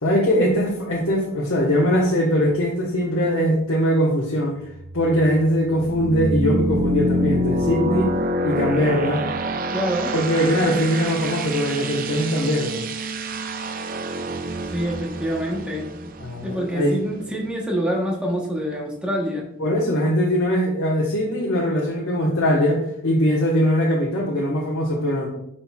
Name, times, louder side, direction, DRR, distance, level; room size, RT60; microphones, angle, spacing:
voice 1, 0.0-4.5 4.9-8.1 8.4-9.2 10.1-12.8 16.2-17.0 19.6-25.3, equal, 75° left, -4 dB, 1.3 m, -21 dB
sound 1, 4.7-17.3, right 1 dB, 40° right, 0.4 m, -27 dB
voice 2, 9.7-10.1 14.7-15.9 16.4-19.5, equal, 5° right, -3 dB, 0.9 m, -26 dB
10.0 x 4.4 x 2.3 m, 0.77 s
head